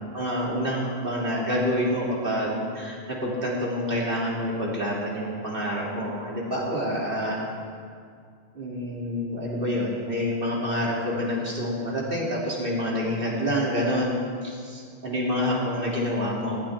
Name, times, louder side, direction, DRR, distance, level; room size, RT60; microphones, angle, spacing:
voice 1, 0.1-7.4 8.5-14.1 14.4-16.6, equal, 55° right, -5 dB, 3.4 m, -27 dB
18.5 x 16.0 x 3.7 m, 2.1 s
omnidirectional pair, 1.1 m